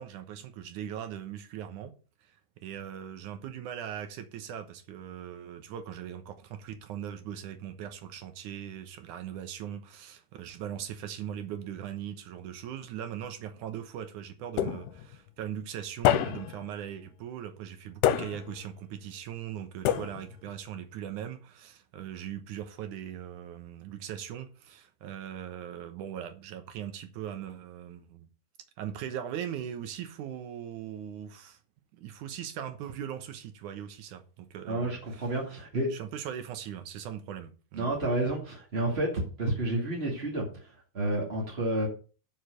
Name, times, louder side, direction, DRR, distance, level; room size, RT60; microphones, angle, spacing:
voice 1, 0.0-1.9 2.2-28.3 28.8-31.6 31.9-35.3 35.9-37.9, right 9 dB, 70° right, 2.0 m, -40 dB
sound 1, 14.6-15.2 16.0-16.7 18.0-18.7 19.9-20.5, left 11 dB, 85° left, 2.7 m, -27 dB
voice 2, 34.7-35.9 37.7-41.9, right 1 dB, 25° right, 1.5 m, -30 dB
7.3 x 7.0 x 6.6 m
omnidirectional pair, 4.7 m